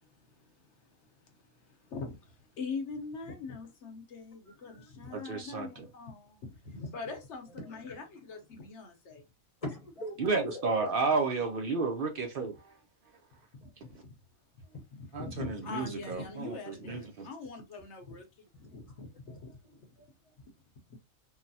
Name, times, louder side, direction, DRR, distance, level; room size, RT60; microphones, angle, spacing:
voice 1, 0.0-9.2 13.5-14.2 14.5-14.6 14.9-19.6, left 4 dB, 60° left, 1.0 m, -43 dB
voice 2, 4.5-4.9 6.8-6.9 7.6-8.0 9.6-10.9 13.6-13.9 14.6-14.8 18.5-18.6 19.3-19.4 19.6-20.3, left 1 dB, 30° left, 0.8 m, -43 dB
voice 3, 5.1-5.9 10.2-12.7 15.1-17.3, right 4 dB, 70° right, 0.5 m, -32 dB
3.8 x 2.1 x 2.6 m
omnidirectional pair, 1.5 m